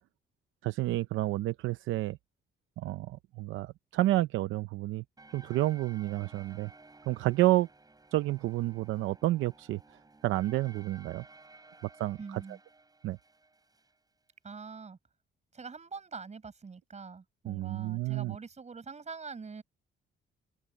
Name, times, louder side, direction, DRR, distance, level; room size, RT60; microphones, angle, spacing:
voice 1, 0.6-2.2 2.8-5.0 5.3-6.7 7.1-7.7 8.1-9.8 10.2-11.2 12.0-12.4 13.0-13.2 17.5-18.4, right 16 dB, 90° right, 0.7 m, -30 dB
sound 1, 5.2-14.0, right 3 dB, 20° right, 7.7 m, -56 dB
voice 2, 12.2-12.6 14.4-15.0 15.5-19.6, right 5 dB, 35° right, 7.0 m, -44 dB
cardioid pair, 90°, 20 cm